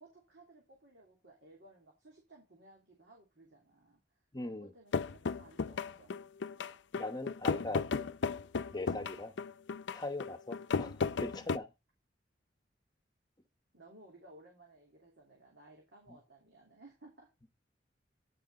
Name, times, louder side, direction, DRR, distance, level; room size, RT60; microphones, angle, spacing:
voice 1, 0.0-4.0 4.4-6.1 13.7-17.3, right 2 dB, 75° right, 3.0 m, -59 dB
voice 2, 4.3-4.7 6.9-8.0 8.7-9.3 9.9-10.9 11.2-11.7, left 2 dB, 25° left, 1.0 m, -40 dB
sound 1, 4.9-11.6, left 5 dB, 90° left, 0.5 m, -35 dB
9.9 x 5.7 x 4.0 m
head